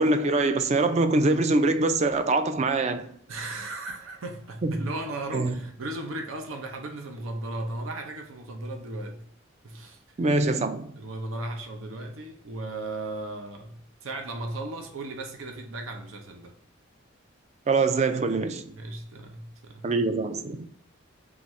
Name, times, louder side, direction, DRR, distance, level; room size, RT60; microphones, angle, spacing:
voice 1, 0.0-3.1 4.6-4.9 5.3-5.5 10.2-10.9 17.7-18.7 19.8-20.6, right 3 dB, 35° right, 0.4 m, -24 dB
voice 2, 3.3-9.2 9.6-10.0 11.0-16.5 18.7-19.9, right 2 dB, 85° right, 0.7 m, -36 dB
3.9 x 3.5 x 3.1 m
head